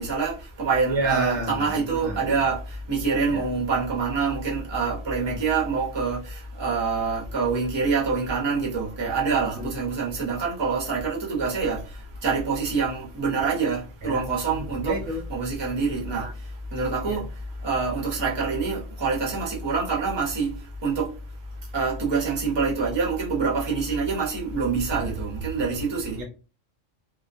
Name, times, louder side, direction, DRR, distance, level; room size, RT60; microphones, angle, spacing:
voice 1, 0.0-15.0 15.3-21.1 21.6-26.2, right 4 dB, 25° right, 0.7 m, -26 dB
voice 2, 0.9-2.3 3.3-3.4 5.3-5.4 9.5-9.7 14.0-15.3 16.1-16.3 17.0-17.2 24.9-25.2 26.1-26.2, right 2 dB, 70° right, 0.8 m, -31 dB
2.3 x 2.2 x 2.5 m
omnidirectional pair, 1.3 m